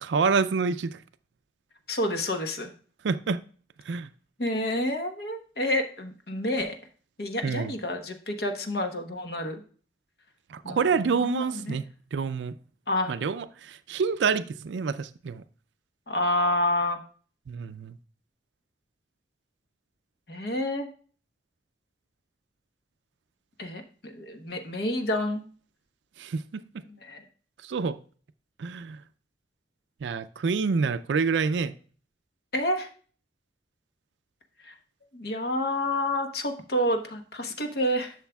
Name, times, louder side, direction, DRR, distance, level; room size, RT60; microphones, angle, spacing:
voice 1, 0.0-1.0 3.0-3.4 3.9-4.1 7.4-7.7 10.5-11.8 12.1-12.5 13.1-15.4 17.5-17.9 26.2-26.6 27.6-28.0 28.6-29.0 30.0-31.8, right 5 dB, 85° right, 0.4 m, -27 dB
voice 2, 1.9-2.7 4.4-6.8 7.2-9.6 10.6-10.9 11.2-11.8 12.9-13.1 16.1-17.0 20.3-20.9 23.6-25.4 26.9-27.2 32.5-32.9 34.7-34.8 35.1-38.1, left 1 dB, 60° left, 1.1 m, -29 dB
11.5 x 6.5 x 2.3 m
head